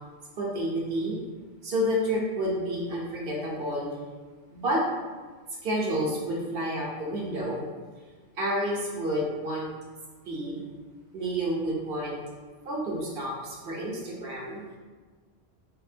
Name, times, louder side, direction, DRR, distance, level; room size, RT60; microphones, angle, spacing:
voice 1, 0.4-1.2 1.6-3.9 4.5-4.8 5.6-7.6 8.4-9.7 10.3-10.7 11.1-12.2 12.6-14.6, equal, 65° right, -3 dB, 1.1 m, -29 dB
4.2 x 3.1 x 2.7 m, 1.4 s
omnidirectional pair, 1.1 m